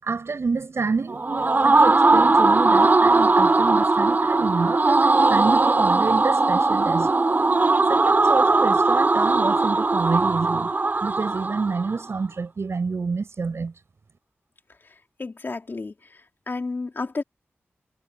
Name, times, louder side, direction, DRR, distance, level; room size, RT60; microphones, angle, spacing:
voice 1, 0.0-7.1 7.9-10.7 11.0-13.7, right 4 dB, 65° right, 7.9 m, -28 dB
sound 1, 1.1-12.0, right 3 dB, 40° right, 3.3 m, -19 dB
voice 2, 15.2-15.9 16.5-17.2, left 3 dB, 45° left, 2.9 m, -30 dB
wide cardioid pair, 95°, 5 cm